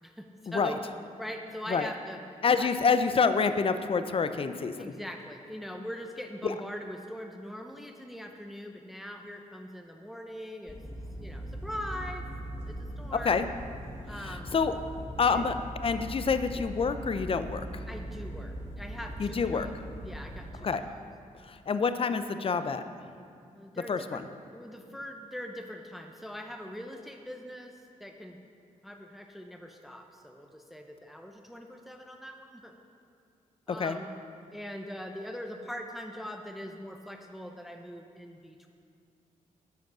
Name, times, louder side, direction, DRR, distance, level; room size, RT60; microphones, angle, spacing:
voice 1, 0.0-0.8 1.2-2.2 2.6-2.7 4.8-10.8 11.2-12.3 12.7-13.4 14.1-14.5 15.3-15.5 17.9-19.7 20.0-21.0 23.5-24.2 24.5-28.4 28.8-32.8 33.7-34.1 34.5-38.7, equal, ahead, 4 dB, 0.7 m, -42 dB
voice 2, 2.4-4.9 6.4-6.5 13.1-13.5 14.3-14.7 15.2-15.5 15.8-17.8 19.2-19.7 20.6-20.8 21.4-22.8 23.9-24.2 33.7-34.0, left 5 dB, 40° left, 10 dB, 0.5 m, -27 dB
sound 1, 10.7-20.5, right 1 dB, 20° left, 2.2 m, -40 dB
10.5 x 5.1 x 6.1 m, 2.4 s
cardioid pair, 60°, 15 cm